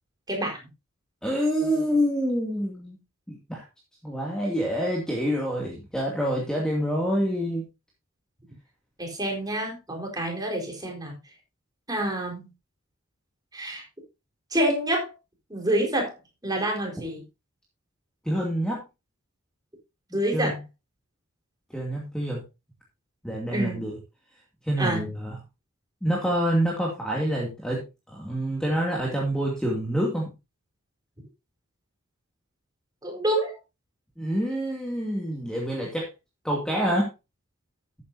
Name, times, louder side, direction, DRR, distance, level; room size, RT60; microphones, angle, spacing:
voice 1, 1.2-3.0 3.3-3.6 4.0-7.7 18.2-18.8 20.3-20.6 21.7-22.4 23.2-24.0 24.6-25.4 26.0-30.3 34.2-36.1 36.4-37.1, equal, 5° left, -2 dB, 2.4 m, -27 dB
voice 2, 9.0-11.2 11.9-12.5 13.5-13.8 14.5-15.1 15.5-16.1 16.4-17.2 20.1-20.5 23.5-23.8 24.8-25.0 33.0-33.5, right 1 dB, 15° right, 1 dB, 4.4 m, -27 dB
13.5 x 9.5 x 2.7 m, 0.25 s
head